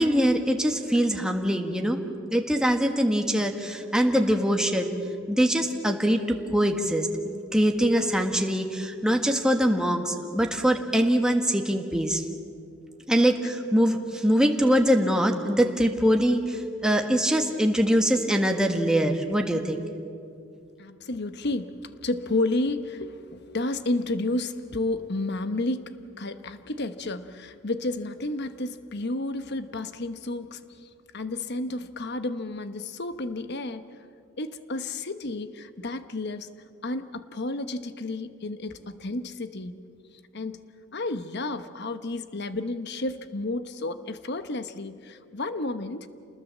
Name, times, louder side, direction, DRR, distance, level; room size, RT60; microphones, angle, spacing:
voice 1, 0.0-2.0 2.3-4.9 5.3-12.2 13.1-19.8, equal, 5° right, 3 dB, 1.5 m, -23 dB
voice 2, 20.8-33.9 34.4-36.5 36.8-39.8 40.3-40.6 40.9-46.1, left 2 dB, 55° left, 11 dB, 1.1 m, -31 dB
28.0 x 20.5 x 7.4 m, 2.4 s
head